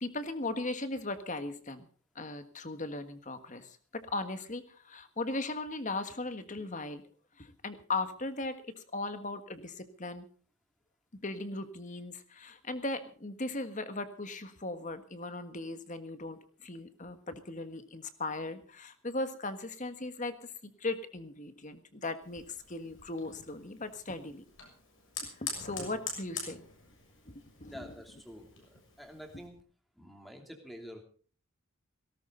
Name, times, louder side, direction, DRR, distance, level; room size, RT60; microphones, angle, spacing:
voice 1, 0.0-1.9 2.1-7.0 7.4-10.3 11.2-24.4 25.2-26.6 27.2-27.9, left 2 dB, 35° left, 10 dB, 1.6 m, -38 dB
Fire, 22.2-29.5, left 4 dB, 60° left, 6.7 m, -45 dB
voice 2, 27.7-29.6 30.0-31.0, equal, ahead, 4 dB, 2.9 m, -48 dB
18.0 x 17.5 x 3.9 m, 0.42 s
head